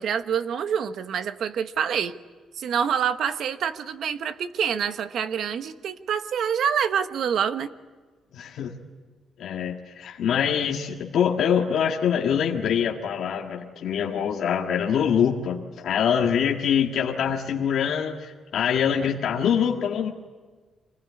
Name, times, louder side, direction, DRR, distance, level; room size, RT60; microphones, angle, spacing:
voice 1, 0.0-2.1 2.6-7.7, right 8 dB, 55° right, 10 dB, 1.0 m, -26 dB
voice 2, 8.3-8.7 9.4-20.1, left 8 dB, 60° left, 0 dB, 1.7 m, -24 dB
25.5 x 20.0 x 9.7 m, 1.4 s
cardioid pair, 180°, 0 cm